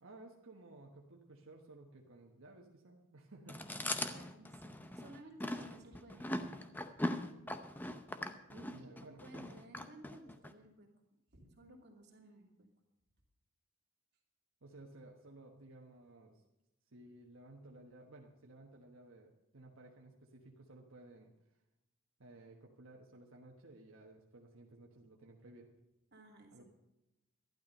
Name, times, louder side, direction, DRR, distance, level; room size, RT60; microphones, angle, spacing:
voice 1, 0.0-3.9 8.5-9.5 14.6-16.4 16.9-21.3 22.2-25.7 26.5-26.6, right 2 dB, 75° right, 0 dB, 1.3 m, -56 dB
Chewing mastication, 3.5-10.5, left 1 dB, 10° left, 0.6 m, -41 dB
voice 2, 4.0-6.6 8.8-10.9 11.3-12.7 26.1-26.6, right 1 dB, 50° right, 0 dB, 2.6 m, -57 dB
12.0 x 11.5 x 5.4 m, 0.95 s
head